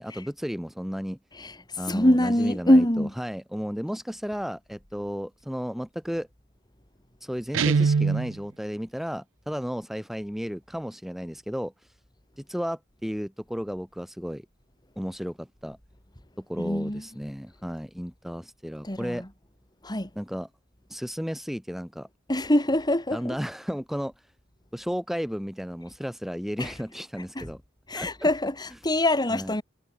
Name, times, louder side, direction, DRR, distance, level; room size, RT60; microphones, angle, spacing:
voice 1, 0.0-1.2 1.8-6.3 7.2-11.7 12.4-14.4 15.0-15.8 16.4-19.2 20.1-20.5 20.9-22.1 23.1-24.3 24.7-27.6 27.9-28.1 29.3-29.5, equal, ahead, 1.6 m, -33 dB
voice 2, 1.9-3.1 16.6-17.0 18.8-19.3 19.8-20.1 22.3-23.4 26.6-26.7 27.3-27.5 27.9-29.6, left 1 dB, 20° left, 3.2 m, -24 dB
Guitar, 7.5-8.3, right 5 dB, 85° right, 0.5 m, -22 dB
head